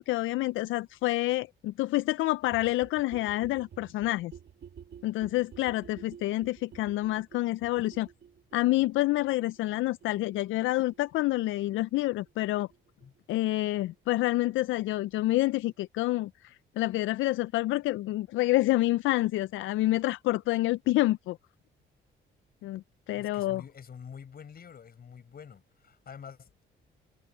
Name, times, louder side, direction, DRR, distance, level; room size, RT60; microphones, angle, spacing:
voice 1, 0.0-4.3 5.0-8.1 8.5-12.7 13.3-21.4 22.6-23.6, left 17 dB, 80° left, 0.4 m, -28 dB
sound 1, 2.4-13.9 14.2-14.3 14.5-14.6 14.8-14.9 15.1-15.2 15.4-15.5 15.7-15.8, right 8 dB, 60° right, 2.0 m, -52 dB
voice 2, 23.1-26.6, left 7 dB, 50° left, 6.9 m, -47 dB
cardioid pair, 90°, 20 cm